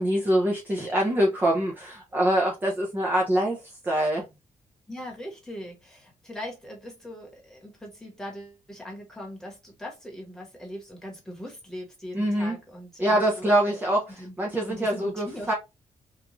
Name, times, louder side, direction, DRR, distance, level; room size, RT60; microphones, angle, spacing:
voice 1, 0.0-3.6 3.8-4.2 12.1-12.6 13.0-14.0 14.4-15.5, right 1 dB, 15° right, 0.5 m, -24 dB
voice 2, 4.9-13.8 14.2-14.3 14.7-15.5, equal, 5° left, 1.1 m, -40 dB
3.0 x 2.3 x 2.5 m
wide cardioid pair, 165°, 13 cm